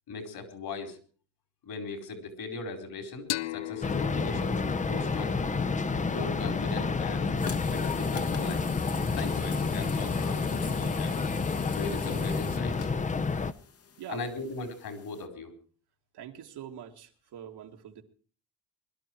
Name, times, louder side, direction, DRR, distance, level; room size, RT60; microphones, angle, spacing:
voice 1, 0.1-1.0 1.6-5.5 6.1-7.4 7.6-8.6 9.2-11.1 11.7-12.9 14.1-15.5, left 3 dB, 65° left, 7 dB, 4.3 m, -39 dB
sound 1, 3.3-6.7, left 16 dB, 85° left, 0.7 m, -39 dB
sound 2, 3.8-13.5, left 4 dB, 20° left, 0.7 m, -29 dB
sound 3, 7.4-15.2, left 6 dB, 35° left, 1.1 m, -43 dB
voice 2, 16.1-18.0, right 10 dB, 75° right, 3 dB, 2.3 m, -44 dB
22.0 x 12.0 x 4.6 m, 0.41 s
cardioid pair, 115°, 40 cm